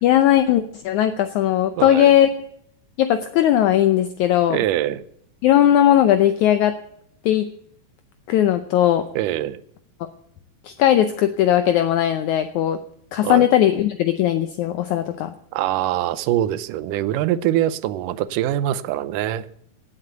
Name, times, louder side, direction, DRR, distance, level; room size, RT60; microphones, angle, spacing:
voice 1, 0.0-2.3 3.0-4.6 5.4-6.8 7.3-7.5 8.3-9.1 10.7-12.8 13.1-15.3, left 11 dB, 75° left, 9 dB, 1.9 m, -18 dB
voice 2, 1.8-2.1 4.5-5.0 9.2-9.6 13.2-13.5 15.5-19.5, right 13 dB, 80° right, 15 dB, 2.2 m, -23 dB
17.5 x 7.9 x 7.9 m, 0.70 s
omnidirectional pair, 3.9 m